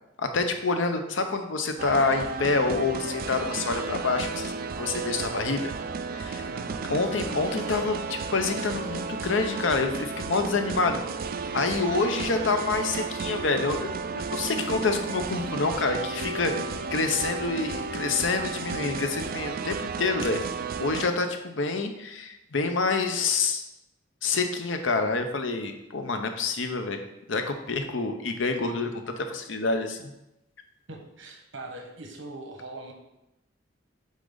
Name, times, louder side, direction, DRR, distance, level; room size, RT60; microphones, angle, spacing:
voice 1, 0.3-5.7 6.1-6.5 6.9-11.0 11.5-16.5 16.9-20.4 20.8-23.6 24.2-27.0 27.3-30.1, left 3 dB, 80° left, 6 dB, 0.8 m, -27 dB
sound 1, 1.8-21.1, right 4 dB, 50° right, 0.4 m, -33 dB
voice 2, 6.5-6.8 30.9-32.9, right 2 dB, 90° right, 2 dB, 1.3 m, -41 dB
8.4 x 3.8 x 3.9 m, 0.90 s
head